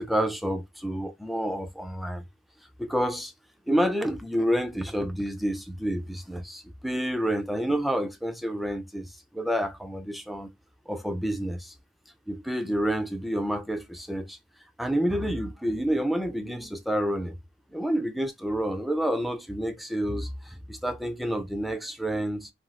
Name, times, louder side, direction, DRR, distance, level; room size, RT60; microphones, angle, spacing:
voice 1, 0.0-2.2 2.8-3.3 3.7-10.5 10.9-11.7 12.3-14.4 14.8-17.4 17.7-22.5, equal, ahead, 0.3 m, -29 dB
3.0 x 2.6 x 2.3 m
head